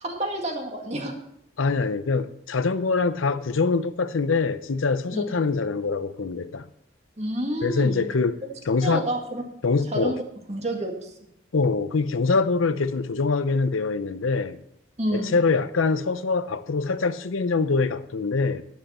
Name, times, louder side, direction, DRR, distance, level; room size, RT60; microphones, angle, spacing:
voice 1, 0.0-1.1 5.1-5.2 7.2-8.1 8.4-8.5 8.8-9.4 9.9-10.2 10.5-11.1 15.0-15.4, right 1 dB, 35° right, 1.9 m, -29 dB
voice 2, 1.6-6.7 7.6-8.4 8.7-9.1 9.6-10.1 11.5-14.6 15.1-18.6, left 4 dB, 85° left, 0.6 m, -24 dB
12.0 x 10.5 x 4.3 m
head